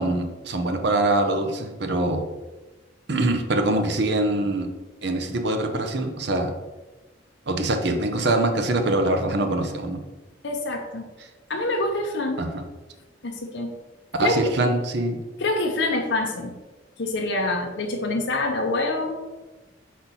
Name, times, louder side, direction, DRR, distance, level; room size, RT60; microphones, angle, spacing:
voice 1, 0.0-2.2 3.1-4.7 5.0-6.5 7.5-10.0 12.4-12.6 14.2-15.2, right 2 dB, 60° right, 5 dB, 0.8 m, -23 dB
voice 2, 10.4-11.1 11.5-12.4 13.2-13.7 14.2-14.4 15.4-16.6 17.0-19.2, left 2 dB, 65° left, 1 dB, 0.7 m, -26 dB
4.3 x 4.3 x 5.4 m, 1.2 s
head